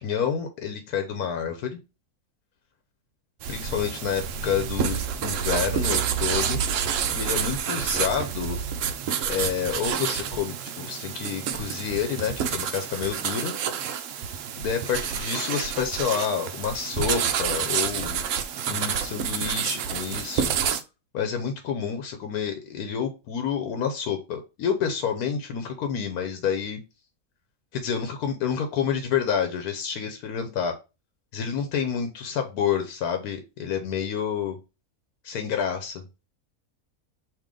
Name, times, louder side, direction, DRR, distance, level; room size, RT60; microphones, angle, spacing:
voice 1, 0.0-1.7 3.5-6.6 7.1-8.6 9.3-13.5 14.6-18.2 18.7-20.5 21.1-26.8 27.7-30.7 31.3-34.6 35.2-36.3, left 7 dB, 85° left, 5 dB, 1.2 m, -29 dB
sound 1, 3.4-20.8, right 8 dB, 70° right, 0.8 m, -28 dB
3.7 x 2.9 x 4.9 m, 0.28 s
omnidirectional pair, 1.6 m